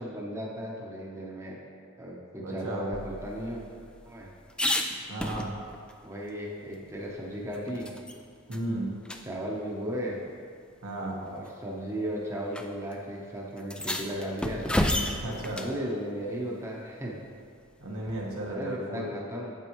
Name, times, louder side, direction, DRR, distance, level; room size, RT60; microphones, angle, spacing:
voice 1, 0.0-1.6 2.0-3.6 4.0-4.3 6.0-7.9 9.2-10.2 11.2-14.6 15.6-17.2 18.5-19.6, equal, 15° right, -3 dB, 0.8 m, -35 dB
voice 2, 2.4-2.9 5.1-5.5 8.5-8.9 10.8-11.2 15.2-15.7 17.8-19.1, right 1 dB, 80° right, -2 dB, 1.4 m, -34 dB
sound 1, 2.9-5.9 6.3-6.4 6.7-8.2 8.5-8.7 9.0-9.2 10.3-10.4 11.2-11.5 12.5-12.7 12.9-13.0 13.6-15.8 18.1-18.5, left 1 dB, 5° left, 0.3 m, -32 dB
8.9 x 7.4 x 3.1 m, 2.3 s
head